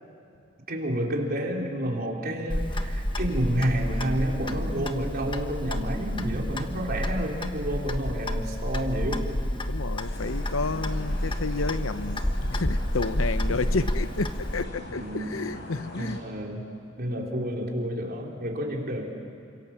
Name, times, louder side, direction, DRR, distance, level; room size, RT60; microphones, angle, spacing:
voice 1, 0.7-9.3 10.7-10.8 14.9-15.4 16.0-16.6 17.0-19.1, right 1 dB, 50° right, 0 dB, 3.9 m, -30 dB
Clock, 2.5-14.6, left 1 dB, 25° left, 1.3 m, -30 dB
voice 2, 9.7-16.2, left 3 dB, 85° left, 12 dB, 0.9 m, -31 dB
sound 1, 10.0-16.2, left 1 dB, 60° left, 5.1 m, -42 dB
29.5 x 26.5 x 7.4 m, 2.6 s
head